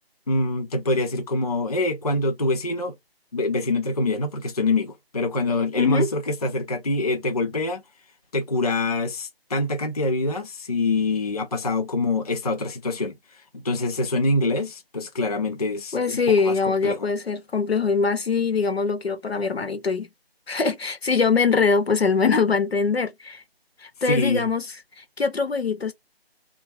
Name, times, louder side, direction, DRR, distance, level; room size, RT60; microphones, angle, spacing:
voice 1, 0.3-2.9 3.3-7.8 8.3-17.1 24.0-24.5, left 2 dB, 40° left, 0.4 m, -25 dB
voice 2, 15.9-20.1 20.5-23.4 23.8-24.6 25.0-25.9, left 5 dB, 75° left, 0.9 m, -22 dB
3.0 x 2.2 x 2.8 m
figure-of-eight pair, 155°, 31 cm